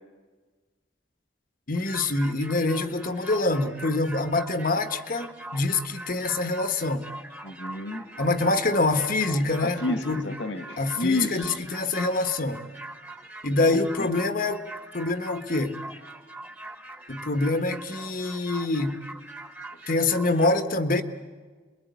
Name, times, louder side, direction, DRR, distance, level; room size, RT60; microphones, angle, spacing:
voice 1, 1.7-7.1 8.2-10.3 10.8-12.7 13.4-14.6 14.9-15.8 17.1-19.0 19.9-21.0, left 2 dB, 50° left, 8 dB, 1.4 m, -25 dB
sound 1, 1.7-20.5, right 2 dB, 10° right, 1.6 m, -42 dB
voice 2, 7.4-8.0 9.6-11.6 13.4-14.1, left 2 dB, 75° left, 6 dB, 2.1 m, -30 dB
27.5 x 22.0 x 9.4 m, 1.5 s
head